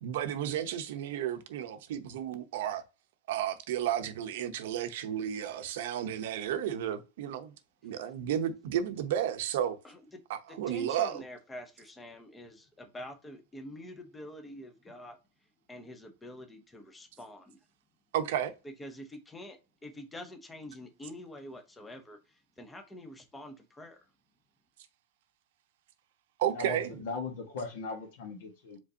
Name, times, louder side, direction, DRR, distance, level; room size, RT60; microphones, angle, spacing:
voice 1, 0.0-2.8 3.3-7.5 7.8-9.8 10.3-11.2 18.1-18.5 26.4-27.0, right 10 dB, 60° right, 0.8 m, -32 dB
voice 2, 10.5-15.2 15.7-17.6 18.8-24.1, left 1 dB, 10° left, 0.7 m, -46 dB
voice 3, 26.5-28.8, left 4 dB, 60° left, 1.5 m, -39 dB
5.1 x 3.7 x 2.8 m
supercardioid pair, 165°, 0 cm